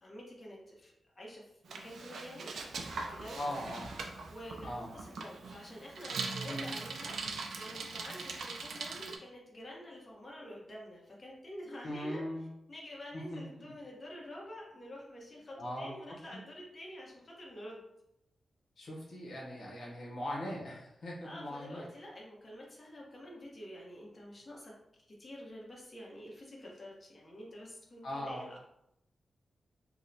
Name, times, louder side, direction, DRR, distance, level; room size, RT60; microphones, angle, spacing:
voice 1, 0.0-2.7 3.1-3.5 4.3-7.2 7.5-12.2 12.7-17.8 21.2-24.7 25.2-28.6, equal, 35° left, -3 dB, 0.9 m, -48 dB
Bicycle, 1.6-9.2, right 4 dB, 85° right, 0.4 m, -41 dB
voice 2, 3.3-3.9 4.6-4.9 6.5-6.7 11.8-12.5 13.1-13.7 15.6-15.9 16.3-16.4 18.8-21.9 28.0-28.4, left 1 dB, 80° left, -4 dB, 0.8 m, -40 dB
2.9 x 2.1 x 3.9 m, 0.82 s
cardioid pair, 85°, 0 cm